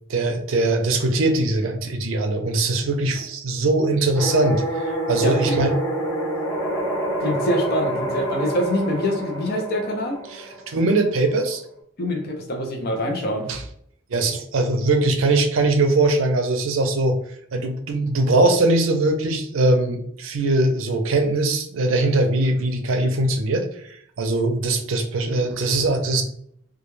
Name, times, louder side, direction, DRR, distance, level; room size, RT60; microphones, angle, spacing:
voice 1, 0.1-5.7 10.3-11.6 13.5-13.6 14.1-17.2 17.5-26.2, right 2 dB, 75° right, 5 dB, 0.5 m, -21 dB
sound 1, 4.1-11.1, right 1 dB, 15° left, 0.7 m, -27 dB
voice 2, 5.2-5.6 7.2-10.2 12.0-13.5, left 1 dB, 50° left, 3 dB, 0.6 m, -25 dB
2.3 x 2.1 x 3.0 m, 0.66 s
head